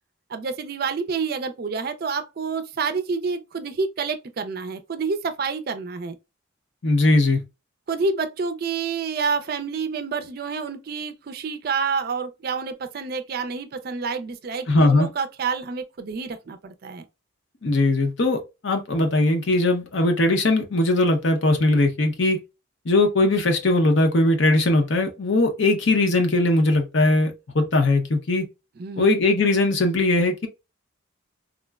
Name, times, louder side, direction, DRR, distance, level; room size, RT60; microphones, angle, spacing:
voice 1, 0.3-6.1 7.9-17.0 28.8-29.2, right 5 dB, 45° right, 0.4 m, -28 dB
voice 2, 6.8-7.4 14.7-15.1 17.6-22.4 22.9-28.5 29.0-30.5, left 2 dB, 65° left, 0.7 m, -20 dB
3.6 x 2.0 x 2.2 m
head